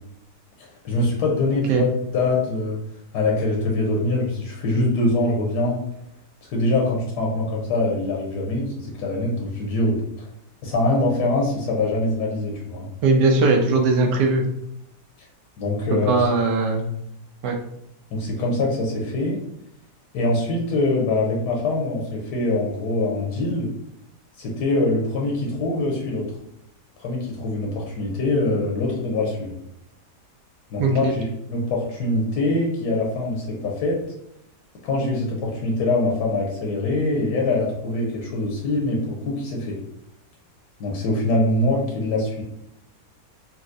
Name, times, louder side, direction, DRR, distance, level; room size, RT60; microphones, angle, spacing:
voice 1, 0.6-2.8 3.1-5.8 6.5-10.0 10.6-12.9 15.6-16.3 18.1-19.4 20.1-23.7 24.4-26.2 27.0-29.5 30.7-34.0 34.8-39.8 40.8-42.4, left 2 dB, 80° left, -2 dB, 1.3 m, -23 dB
voice 2, 13.0-14.4 16.1-16.9 17.4-17.6 30.8-31.1, right 3 dB, 80° right, 2 dB, 1.2 m, -19 dB
4.1 x 2.3 x 2.5 m, 0.79 s
omnidirectional pair, 1.8 m